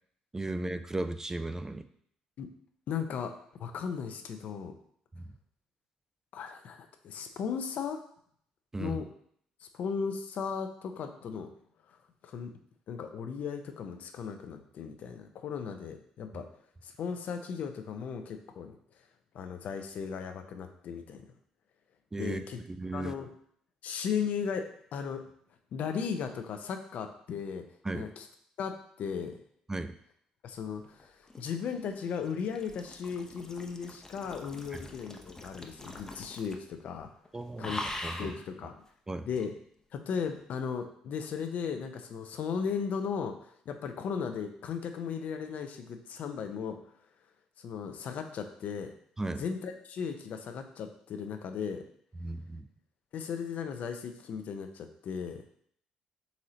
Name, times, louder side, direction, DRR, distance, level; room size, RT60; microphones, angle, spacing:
voice 1, 0.3-1.9 5.2-5.3 8.7-9.0 22.1-22.4 22.8-23.1 27.9-28.1 29.7-29.9 34.7-34.8 37.3-37.7 38.0-38.3 39.1-39.3 49.2-49.4 52.2-52.7, right 2 dB, 20° right, 10 dB, 0.3 m, -35 dB
voice 2, 2.9-3.3 3.6-4.7 6.3-8.0 8.8-9.1 9.6-11.5 11.9-12.0 12.2-12.6 12.9-16.5 16.8-18.8 19.3-21.3 22.2-22.6 22.9-23.3 23.8-24.7 24.9-25.2 25.7-27.6 27.9-28.3 28.6-29.4 30.4-37.1 37.6-38.8 39.2-39.5 39.9-46.8 47.6-48.9 49.4-51.8 53.1-55.6, left 6 dB, 65° left, 6 dB, 0.5 m, -36 dB
sound 1, 31.0-36.7 37.0-37.3 37.6-38.4 39.4-39.5, left 1 dB, 20° left, 0.6 m, -43 dB
4.0 x 3.0 x 3.9 m, 0.66 s
supercardioid pair, 60°, 3 cm